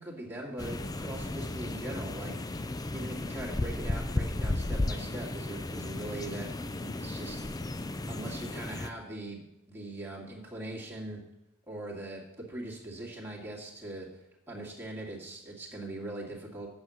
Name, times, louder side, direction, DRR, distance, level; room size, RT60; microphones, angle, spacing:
voice 1, 0.0-9.4 9.7-11.2 11.7-12.2 12.5-14.1 14.5-16.7, right 1 dB, 10° right, -4 dB, 2.2 m, -41 dB
sound 1, 0.6-8.9, left 2 dB, 20° left, 0.4 m, -34 dB
8.9 x 7.0 x 6.4 m, 0.91 s
head